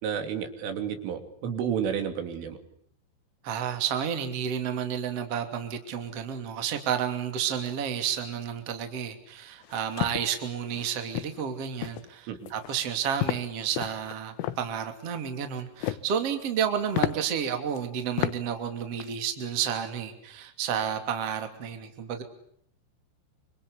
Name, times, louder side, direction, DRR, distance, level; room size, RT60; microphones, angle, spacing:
voice 1, 0.0-2.6 12.3-12.5, right 8 dB, 75° right, 7 dB, 5.6 m, -31 dB
voice 2, 3.4-22.2, right 8 dB, 35° right, 7 dB, 3.2 m, -31 dB
sound 1, 9.6-10.2 10.7-10.9 11.1-11.4 11.8-12.1 12.5-12.8 13.2-13.4 13.7-14.6 15.5-16.1 16.5-16.6 16.9-17.1 17.8-17.9 18.2-18.4 18.7-19.1, left 15 dB, 80° left, 3.7 m, -31 dB
27.0 x 26.0 x 8.3 m, 0.69 s
omnidirectional pair, 5.8 m